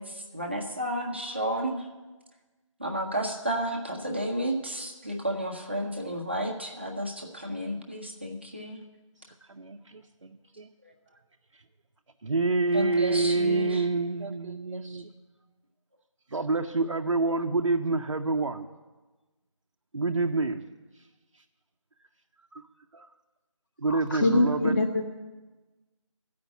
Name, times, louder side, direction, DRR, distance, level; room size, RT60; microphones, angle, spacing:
voice 1, 0.0-1.9 2.8-8.8 12.7-13.9, right 1 dB, 20° right, 0 dB, 0.7 m, -32 dB
voice 2, 9.5-10.7 12.2-15.1 16.3-18.7 19.9-20.6 22.5-22.6 22.9-23.1 23.8-24.8, right 3 dB, 60° right, 2 dB, 0.6 m, -27 dB
voice 3, 23.9-25.0, left 2 dB, 40° left, 1 dB, 0.8 m, -24 dB
13.5 x 5.2 x 8.0 m, 1.2 s
figure-of-eight pair, 175°, 17 cm